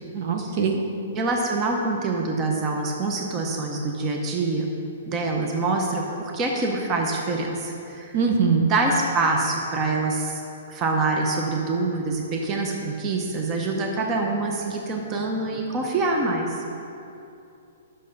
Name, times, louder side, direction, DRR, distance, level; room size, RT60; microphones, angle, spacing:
voice 1, 0.1-0.8 8.1-8.7, right 5 dB, 55° right, 3 dB, 1.0 m, -22 dB
voice 2, 1.2-4.7 5.1-8.2 8.6-10.4 10.7-16.6, right 3 dB, 25° right, 1 dB, 0.8 m, -25 dB
8.3 x 6.6 x 5.3 m, 2.8 s
hypercardioid pair, 150°, 0 cm